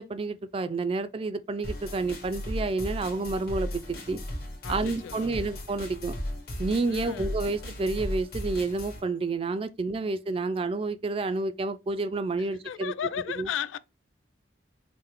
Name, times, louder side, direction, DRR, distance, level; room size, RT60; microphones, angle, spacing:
voice 1, 0.0-4.2 4.7-6.2 6.6-12.9 13.4-13.5, right 3 dB, 30° right, 0.3 m, -29 dB
sound 1, 1.6-9.0, left 1 dB, 55° left, 1.4 m, -36 dB
voice 2, 4.6-5.4 6.9-7.4 12.4-13.8, left 9 dB, 90° left, 0.3 m, -35 dB
5.6 x 2.1 x 3.0 m
head